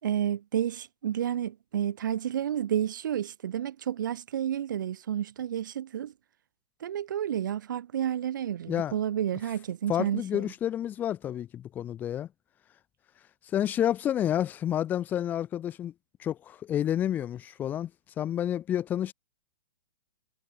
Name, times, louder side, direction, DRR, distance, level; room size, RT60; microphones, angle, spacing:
voice 1, 0.0-6.1 6.8-10.5, right 10 dB, 65° right, 6.4 m, -30 dB
voice 2, 9.9-12.3 13.5-15.9 16.2-17.9 18.2-19.1, left 10 dB, 15° left, 2.2 m, -29 dB
hypercardioid pair, 170°, 11 cm